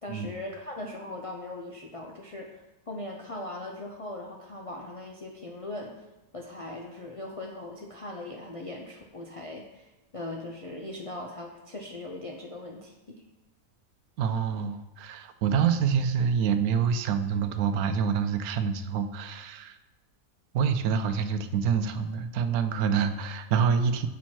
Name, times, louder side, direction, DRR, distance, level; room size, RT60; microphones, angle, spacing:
voice 1, 0.0-5.9 6.3-13.2, left 2 dB, 50° left, -1 dB, 0.4 m, -40 dB
voice 2, 14.2-19.7 20.5-24.1, right 7 dB, 85° right, 9 dB, 1.1 m, -26 dB
7.1 x 4.5 x 4.3 m, 0.97 s
omnidirectional pair, 1.5 m